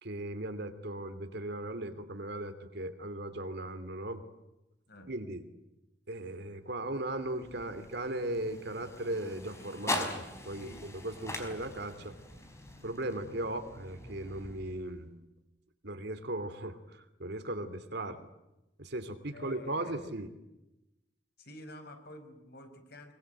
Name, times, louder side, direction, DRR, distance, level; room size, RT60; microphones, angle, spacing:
voice 1, 0.0-4.2 5.1-5.4 6.1-10.7 11.0-12.2 12.8-15.1 15.8-18.3 18.8-20.3, right 1 dB, 65° right, 9 dB, 2.9 m, -37 dB
sound 1, 6.9-15.1, left 1 dB, 15° left, 5.1 m, -42 dB
voice 2, 10.5-11.4 19.3-20.1 21.4-23.1, left 1 dB, 60° left, 7 dB, 4.9 m, -50 dB
24.0 x 24.0 x 9.2 m, 0.94 s
head